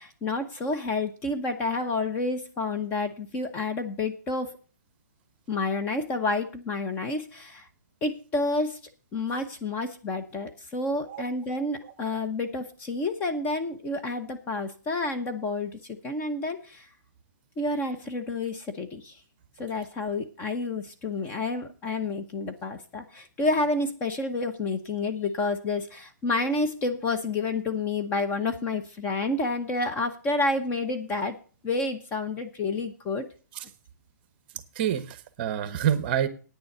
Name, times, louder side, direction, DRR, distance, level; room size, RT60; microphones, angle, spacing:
voice 1, 0.0-4.5 5.5-7.7 8.0-8.8 9.1-15.7 16.0-16.9 17.6-19.2 19.6-31.4 31.6-33.3, left 2 dB, 15° left, 6 dB, 0.9 m, -29 dB
voice 2, 34.8-36.3, right 10 dB, 35° right, 13 dB, 1.0 m, -27 dB
9.4 x 7.0 x 7.8 m, 0.38 s
hypercardioid pair, 160°, 10 cm